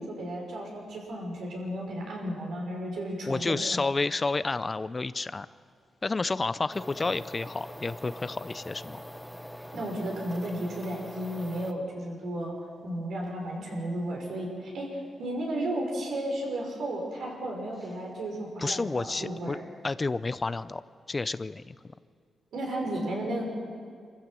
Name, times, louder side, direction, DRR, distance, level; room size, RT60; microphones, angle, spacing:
voice 1, 0.0-3.8 9.7-12.5 12.8-19.6 22.5-23.5, right 1 dB, 80° right, -1 dB, 5.9 m, -33 dB
voice 2, 3.3-5.5 6.0-9.0 18.6-19.6 19.8-20.8 21.1-21.8, left 3 dB, 30° left, 15 dB, 0.6 m, -30 dB
Harddrives spinning, 6.7-11.7, equal, ahead, 1.1 m, -43 dB
26.0 x 15.0 x 7.7 m, 2.1 s
cardioid pair, 90°, 0 cm